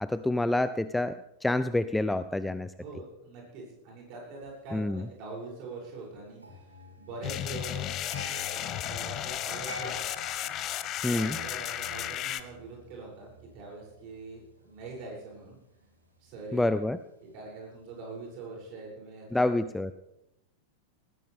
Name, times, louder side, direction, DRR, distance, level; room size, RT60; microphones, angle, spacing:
voice 1, 0.0-2.7 4.7-5.1 11.0-11.4 16.5-17.0 19.3-19.9, left 2 dB, 5° left, 13 dB, 0.5 m, -28 dB
voice 2, 2.8-6.6 7.0-7.9 8.9-10.0 10.7-15.6 16.2-16.8 17.2-19.5, right 3 dB, 40° right, -2 dB, 7.5 m, -43 dB
sound 1, 6.4-17.4 17.7-18.0, equal, 80° right, 2.7 m, -49 dB
sound 2, 7.2-12.4, left 12 dB, 35° left, 0.8 m, -34 dB
19.0 x 15.5 x 3.6 m, 0.84 s
figure-of-eight pair, 90°, 0 cm